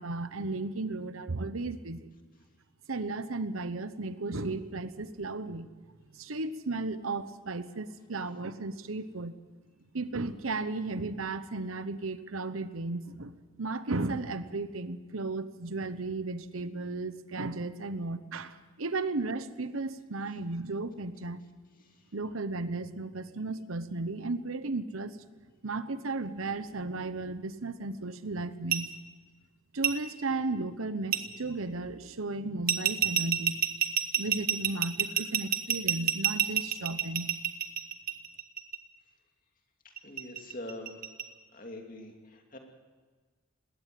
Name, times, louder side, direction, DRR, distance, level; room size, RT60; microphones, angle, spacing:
voice 1, 0.0-2.1 2.9-5.7 6.1-9.4 9.9-21.4 22.1-25.2 25.6-28.9 29.7-33.6 34.2-37.3, right 3 dB, 85° right, 13 dB, 1.0 m, -35 dB
voice 2, 21.8-22.1 40.0-41.0 41.5-42.6, left 1 dB, 40° left, 2 dB, 2.7 m, -44 dB
sound 1, 28.7-28.8 29.8-29.9 31.1-31.2 32.7-38.8 40.0-41.2, right 10 dB, 45° right, 1.1 m, -27 dB
20.5 x 17.5 x 7.7 m, 1.4 s
head